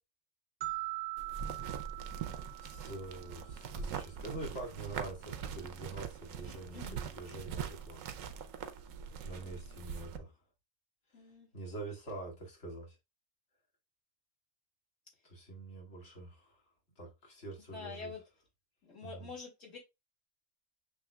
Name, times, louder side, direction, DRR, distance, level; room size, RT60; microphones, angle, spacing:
sound 1, 0.6-3.7, right 20 dB, 70° right, 1.5 m, -42 dB
sound 2, 1.2-10.2, right 7 dB, 90° right, 1.0 m, -42 dB
voice 1, 2.6-8.0 9.2-10.3 11.2-11.3 11.5-13.0 15.2-16.6 17.0-18.1 19.0-19.3, right 2 dB, 65° left, 2.1 m, -45 dB
voice 2, 11.1-11.5 17.7-18.2 18.8-19.8, left 4 dB, 85° left, 2.7 m, -46 dB
7.1 x 3.1 x 2.2 m
omnidirectional pair, 1.3 m